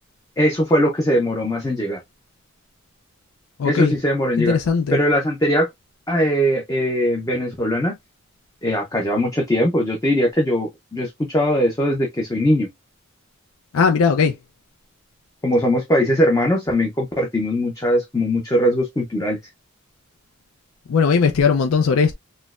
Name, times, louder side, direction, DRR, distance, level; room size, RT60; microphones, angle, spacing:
voice 1, 0.4-2.0 3.6-4.6 4.9-5.7 6.1-8.0 8.6-12.7 15.4-19.4, equal, 15° left, 0.5 m, -20 dB
voice 2, 3.6-3.9 4.4-5.0 13.7-14.4 20.9-22.1, left 5 dB, 90° left, 0.4 m, -18 dB
4.2 x 2.1 x 2.3 m
head